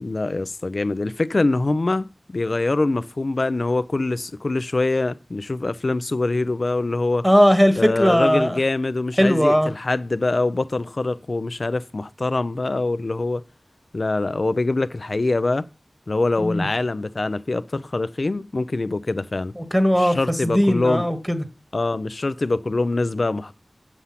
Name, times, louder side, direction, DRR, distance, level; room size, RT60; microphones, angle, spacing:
voice 1, 0.0-7.3 7.8-13.4 13.9-15.6 16.1-19.5 20.0-21.1 21.7-23.5, left 2 dB, 70° left, 0.6 m, -24 dB
voice 2, 7.2-8.6 9.2-9.7 16.4-16.7 19.6-20.2 20.4-21.4, equal, ahead, 1.2 m, -18 dB
8.3 x 7.2 x 5.8 m
wide cardioid pair, 55°, 0 cm